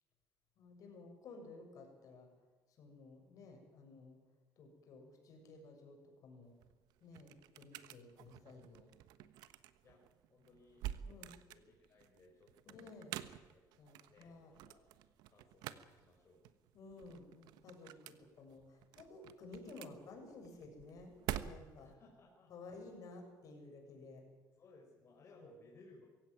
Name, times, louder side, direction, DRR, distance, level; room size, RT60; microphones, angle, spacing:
voice 1, 0.6-2.3 2.8-4.2 4.6-6.5 7.0-8.9 11.1-11.3 12.7-13.1 13.8-14.5 16.7-21.9 22.5-24.2 25.3-25.6, left 3 dB, 55° left, 3 dB, 7.2 m, -54 dB
sound 1, 6.4-21.9, right 12 dB, 90° right, 1.2 m, -49 dB
voice 2, 10.3-13.1 13.4-13.6 14.1-14.9 15.3-16.4 21.8-22.5 24.6-26.1, left 3 dB, 40° left, -1 dB, 5.0 m, -63 dB
22.5 x 16.5 x 9.6 m, 1.3 s
cardioid pair, 130°, 7 cm